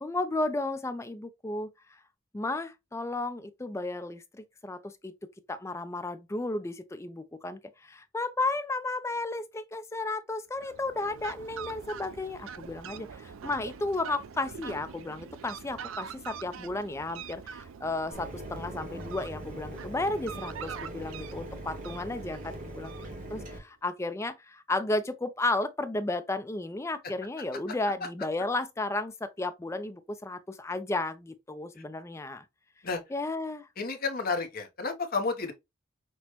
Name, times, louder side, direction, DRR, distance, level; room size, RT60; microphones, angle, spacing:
voice 1, 0.0-2.0 2.3-5.1 5.5-22.9 23.3-32.4 33.1-33.7, left 2 dB, 15° left, 0.3 m, -33 dB
Fowl, 10.5-23.5, right 7 dB, 70° right, 0.4 m, -44 dB
Mechanisms, 18.1-23.6, right 1 dB, 40° right, 1.0 m, -41 dB
voice 2, 33.8-35.5, left 4 dB, 45° left, 0.7 m, -31 dB
6.0 x 2.1 x 2.8 m
head